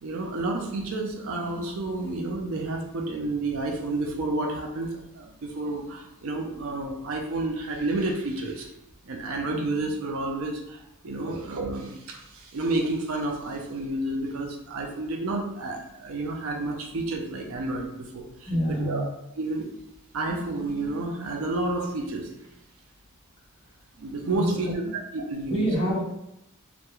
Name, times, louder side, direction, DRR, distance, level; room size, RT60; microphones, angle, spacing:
voice 1, 0.0-8.7 9.1-19.0 19.4-19.7 20.1-22.3 24.0-25.7, right 2 dB, 65° right, 2 dB, 0.4 m, -30 dB
voice 2, 18.5-19.1 24.3-24.7 25.5-26.0, equal, 25° left, -5 dB, 0.7 m, -27 dB
2.3 x 2.1 x 2.9 m, 0.83 s
head